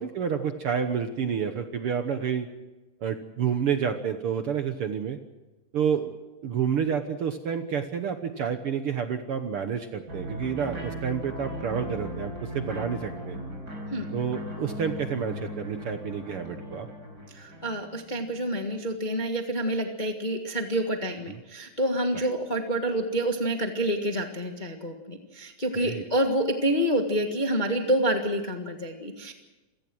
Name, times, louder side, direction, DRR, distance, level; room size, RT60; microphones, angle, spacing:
voice 1, 0.0-2.5 3.0-5.2 5.7-6.1 6.4-13.4 14.1-16.9 21.3-21.4 22.1-22.3 25.7-26.1, right 7 dB, 60° right, 7 dB, 1.6 m, -29 dB
Happy Guitar, 10.1-18.4, equal, 30° right, 5.3 m, -38 dB
voice 2, 17.3-29.3, right 1 dB, 25° left, 3 dB, 0.9 m, -28 dB
27.5 x 17.5 x 6.2 m, 1.1 s
omnidirectional pair, 3.6 m